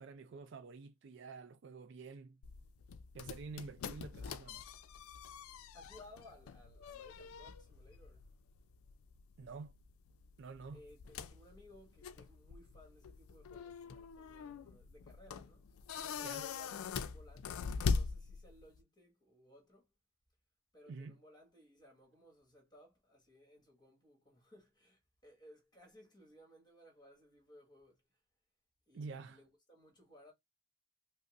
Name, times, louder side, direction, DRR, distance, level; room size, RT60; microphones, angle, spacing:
voice 1, 0.0-2.4 3.1-4.7 9.4-9.7 10.4-10.8 16.2-16.5 20.9-21.2 28.9-29.4, right 4 dB, 55° right, 0.4 m, -48 dB
sound 1, 2.4-18.8, left 5 dB, 80° left, 0.4 m, -43 dB
voice 2, 5.7-8.3 10.7-15.7 16.0-19.9 20.7-28.0 28.9-30.3, left 1 dB, 20° left, 1.5 m, -61 dB
5.1 x 2.0 x 2.5 m
head